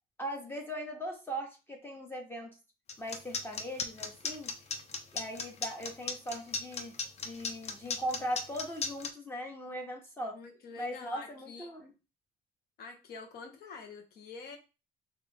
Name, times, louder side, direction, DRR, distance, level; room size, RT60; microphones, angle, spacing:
voice 1, 0.2-2.5 3.0-4.5 5.1-6.9 7.2-10.4 10.8-11.9, equal, 15° left, 1 dB, 0.9 m, -39 dB
sound 1, 2.9-9.1, left 4 dB, 40° left, 0.6 m, -35 dB
voice 2, 10.3-11.7 12.8-14.6, left 4 dB, 70° left, 4 dB, 1.0 m, -46 dB
3.4 x 2.7 x 3.5 m, 0.30 s
cardioid pair, 110°, 17 cm